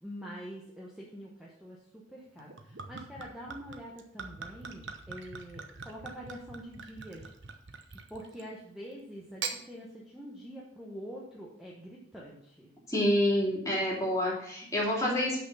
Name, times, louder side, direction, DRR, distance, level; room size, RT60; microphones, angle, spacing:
voice 1, 0.0-7.3 8.1-12.7, equal, ahead, -4 dB, 1.1 m, -45 dB
Gurgling / Chink clink / Liquid, 2.4-8.5 9.2-9.6, right 5 dB, 70° right, 0.9 m, -43 dB
voice 2, 12.9-15.4, left 1 dB, 15° left, -5 dB, 2.7 m, -28 dB
6.2 x 5.9 x 6.8 m, 0.71 s
head